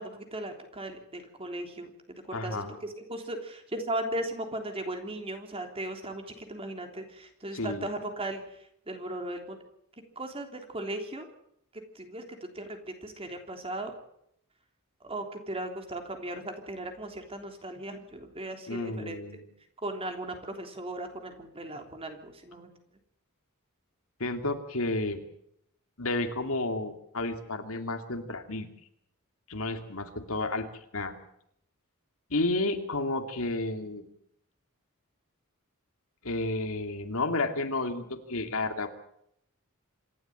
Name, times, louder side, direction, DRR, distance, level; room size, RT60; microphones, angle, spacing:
voice 1, 0.0-1.9 2.3-8.6 8.9-9.6 10.2-11.3 11.7-13.9 15.0-19.2 19.8-22.7, right 1 dB, 25° right, 5 dB, 3.5 m, -37 dB
voice 2, 2.3-2.8 7.5-7.9 18.7-19.5 24.2-25.2 26.0-28.7 29.5-30.7 30.9-31.1 32.3-34.0 36.2-38.9, left 2 dB, 65° left, 7 dB, 2.6 m, -31 dB
26.5 x 12.5 x 8.9 m, 0.74 s
head